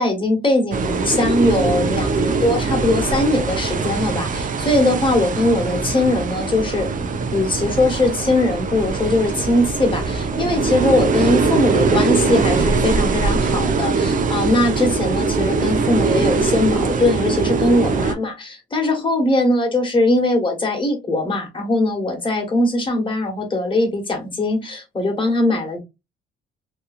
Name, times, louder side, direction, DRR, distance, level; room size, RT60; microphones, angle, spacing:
voice 1, 0.0-6.9 7.3-25.8, left 2 dB, 25° left, 1.3 m, -20 dB
sound 1, 0.7-18.1, right 4 dB, 40° right, 0.5 m, -21 dB
2.9 x 2.3 x 2.4 m
cardioid pair, 90°, 20 cm